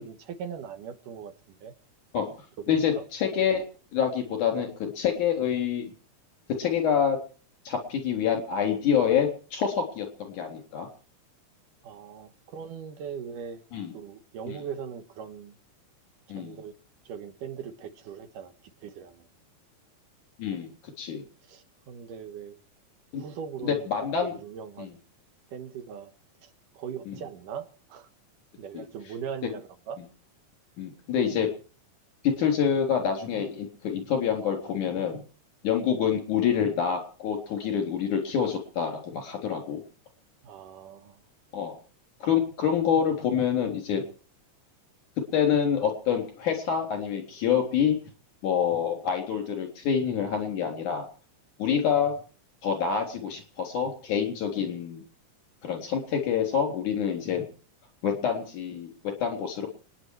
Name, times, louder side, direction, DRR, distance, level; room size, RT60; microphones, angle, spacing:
voice 1, 0.0-1.7 2.6-3.0 11.8-13.6 13.9-15.5 16.3-16.8 17.1-18.5 18.8-19.2 21.5-22.5 23.2-23.9 24.2-24.9 25.5-26.1 26.4-28.1 28.6-30.0 40.4-41.2, right 7 dB, 85° right, 3.0 m, -40 dB
voice 2, 2.7-3.6 3.9-5.8 6.6-7.2 7.6-10.9 13.7-13.9 14.5-14.6 16.3-16.6 20.4-20.7 21.0-21.2 23.1-23.2 23.6-24.3 24.8-24.9 27.1-27.2 28.7-28.8 30.8-31.5 32.2-35.2 35.6-39.8 41.5-41.8 42.2-44.0 45.3-48.0 48.4-51.1 51.6-52.1 52.6-55.0 55.6-57.4 58.0-59.7, left 8 dB, 70° left, 5.0 m, -27 dB
29.5 x 10.0 x 4.7 m
omnidirectional pair, 3.6 m